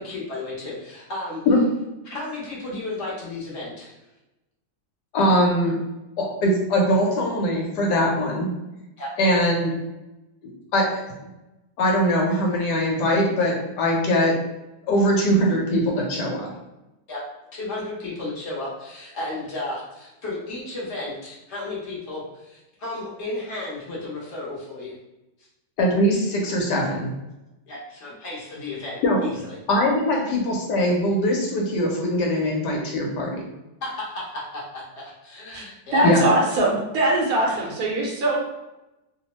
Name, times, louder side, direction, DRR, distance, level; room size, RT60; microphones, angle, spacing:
voice 1, 0.0-1.4 2.0-4.0 9.0-9.1 17.1-17.2 17.5-24.9 27.7-29.6 33.8-36.1 37.4-37.7, left 2 dB, 55° left, -6 dB, 0.9 m, -33 dB
voice 2, 5.1-5.8 6.2-8.5 9.2-9.7 10.7-11.0 11.8-14.4 14.9-16.5 25.8-27.1 29.0-29.2 29.7-33.4 36.0-36.2, equal, 75° left, -1 dB, 1.2 m, -21 dB
voice 3, 35.9-38.4, right 1 dB, 70° right, -3 dB, 0.9 m, -22 dB
2.9 x 2.0 x 2.8 m, 0.98 s
omnidirectional pair, 1.9 m